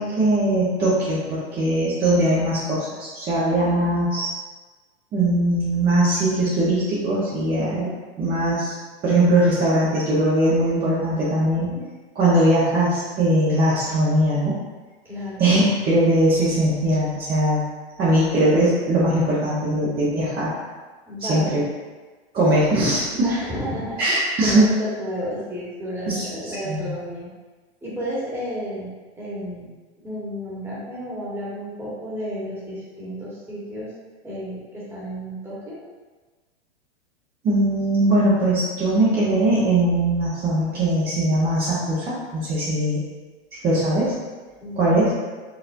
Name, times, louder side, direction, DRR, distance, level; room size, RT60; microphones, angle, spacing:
voice 1, 0.0-4.3 5.1-7.9 8.2-8.7 9.0-11.7 12.1-14.6 15.4-17.6 18.0-20.5 21.3-21.6 22.3-23.3 24.0-24.6 26.1-26.9 37.4-43.0 43.6-44.1 44.8-45.1, right 1 dB, 30° right, -9 dB, 1.1 m, -20 dB
voice 2, 15.0-15.4 21.1-21.6 23.2-27.3 27.8-28.9 29.2-29.7 30.0-33.9 34.2-35.8 44.6-44.8, equal, 5° right, -8 dB, 1.5 m, -32 dB
4.9 x 3.2 x 2.7 m, 1.3 s
hypercardioid pair, 120°, 33 cm